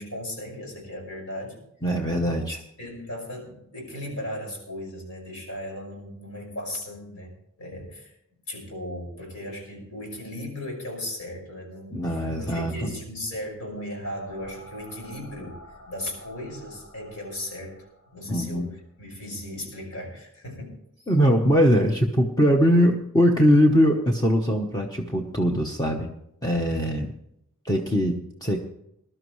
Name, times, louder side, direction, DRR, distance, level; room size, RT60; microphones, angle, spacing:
voice 1, 0.0-1.7 2.2-8.1 8.5-15.6 15.9-17.8 18.1-21.1 26.7-27.0, left 1 dB, 75° left, 0 dB, 5.7 m, -37 dB
voice 2, 1.8-2.6 11.9-12.9 18.3-18.7 21.1-26.1 26.4-27.1 27.6-28.6, equal, 20° left, 1 dB, 1.0 m, -21 dB
sound 1, 14.3-18.9, left 1 dB, 90° left, 5.9 m, -49 dB
20.5 x 12.0 x 3.2 m, 0.77 s
head